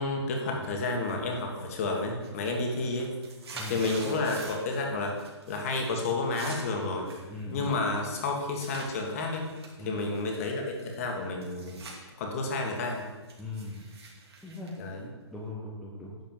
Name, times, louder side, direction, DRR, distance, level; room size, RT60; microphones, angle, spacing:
voice 1, 0.0-3.1 3.7-5.2 5.5-7.1 7.5-9.5 9.8-11.8 12.2-13.1 14.8-15.1, left 3 dB, 30° left, 2 dB, 1.7 m, -30 dB
sound 1, 1.3-1.7 2.1-4.8 5.1-5.6 5.8-8.9 9.4-12.0 12.3-15.5, right 3 dB, 65° right, 3.0 m, -46 dB
voice 2, 7.3-7.7 9.8-10.0 13.4-13.9 14.4-14.7 15.3-16.2, left 2 dB, ahead, -6 dB, 0.7 m, -39 dB
11.0 x 4.6 x 7.3 m, 1.2 s
hypercardioid pair, 165°, 15 cm